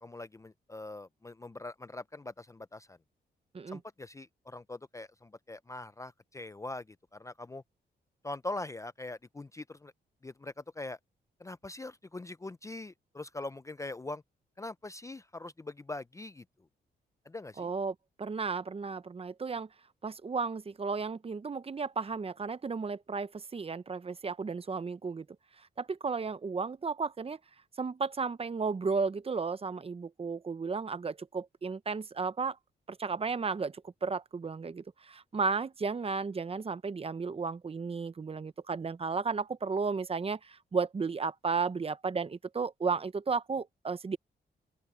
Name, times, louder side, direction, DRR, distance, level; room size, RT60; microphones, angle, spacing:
voice 1, 0.0-3.0 3.7-7.6 8.2-9.9 10.2-11.0 11.4-14.2 14.6-16.4 17.3-17.7, left 2 dB, 15° left, 0.5 m, -42 dB
voice 2, 17.6-19.7 20.0-25.2 25.8-27.4 27.8-32.6 32.9-44.2, right 4 dB, 35° right, 0.8 m, -34 dB
open air
cardioid pair, 90°, 18 cm